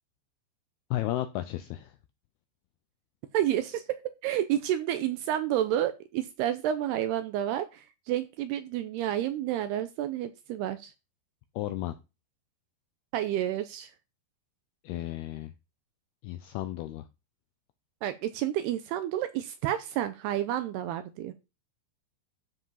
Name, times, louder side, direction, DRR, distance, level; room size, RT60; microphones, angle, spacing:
voice 1, 0.9-2.0 11.6-12.0 14.8-15.5 16.2-17.1, left 14 dB, 85° left, 10 dB, 2.2 m, -33 dB
voice 2, 3.3-10.9 13.1-13.9 18.0-21.3, right 11 dB, 80° right, 10 dB, 2.5 m, -30 dB
12.5 x 5.0 x 5.6 m, 0.28 s
omnidirectional pair, 5.3 m